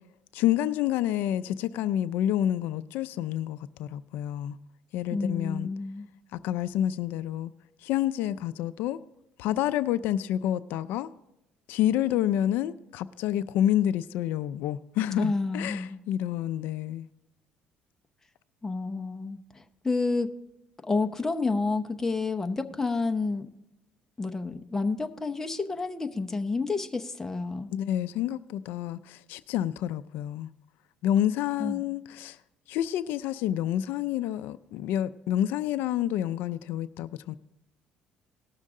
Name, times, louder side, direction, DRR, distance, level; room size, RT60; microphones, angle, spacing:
voice 1, 0.3-4.6 4.9-5.7 6.3-7.5 7.8-9.0 9.4-11.1 11.7-17.1 27.7-30.5 31.0-32.4 32.7-37.3, left 11 dB, 80° left, 0.4 m, -28 dB
voice 2, 5.1-6.1 15.2-16.0 18.6-20.3 20.8-23.5 24.2-27.7 31.6-31.8, left 3 dB, 15° left, 0.8 m, -29 dB
18.5 x 6.5 x 3.7 m
cardioid pair, 125°, 3 cm